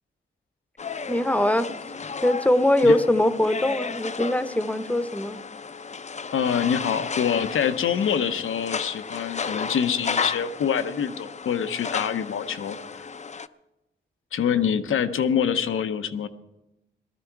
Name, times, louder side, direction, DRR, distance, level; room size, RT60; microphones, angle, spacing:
sound 1, 0.8-13.5, left 5 dB, 35° left, 0.5 m, -33 dB
voice 1, 1.1-1.7 2.2-5.4, left 1 dB, 5° left, 12 dB, 0.8 m, -22 dB
voice 2, 6.3-12.8 14.3-16.3, left 8 dB, 85° left, 10 dB, 0.8 m, -25 dB
18.5 x 13.0 x 4.6 m, 0.94 s
cardioid pair, 60°, 20 cm